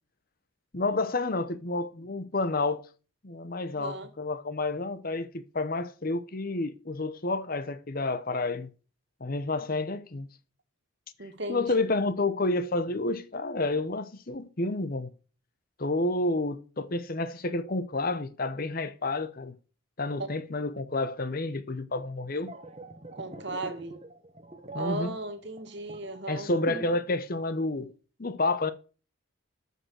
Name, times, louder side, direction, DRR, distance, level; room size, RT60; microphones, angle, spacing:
voice 1, 0.7-2.8 3.2-8.7 9.2-10.3 11.5-15.1 15.8-19.5 20.0-22.5 24.7-25.1 26.3-27.9 28.2-28.7, left 2 dB, 45° left, 0.8 m, -30 dB
voice 2, 3.7-4.1 11.2-11.9 20.2-20.3 23.1-23.9 24.7-26.5, right 2 dB, 55° right, 1.9 m, -36 dB
sound 1, 22.2-27.1 27.4-27.6, right 2 dB, 30° right, 1.3 m, -43 dB
13.5 x 5.5 x 6.4 m
head